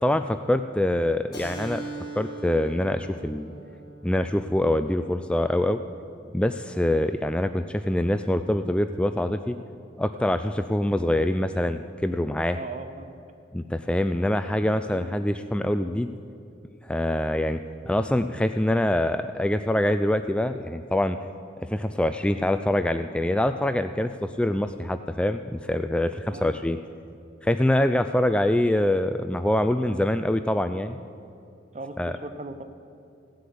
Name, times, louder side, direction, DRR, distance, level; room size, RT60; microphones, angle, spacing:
voice 1, 0.0-1.8 2.2-3.5 4.0-5.8 6.3-9.6 10.0-12.6 13.5-16.1 16.9-17.6 17.8-21.2 21.6-26.8 27.4-31.0 32.0-32.1, left 1 dB, 5° left, 9 dB, 0.3 m, -24 dB
Keyboard (musical), 1.3-6.4, right 3 dB, 20° left, 3.9 m, -42 dB
voice 2, 12.5-13.2 14.9-15.1 26.3-26.6 31.7-32.6, right 2 dB, 40° right, 9 dB, 0.9 m, -38 dB
16.0 x 7.8 x 8.4 m, 2.6 s
head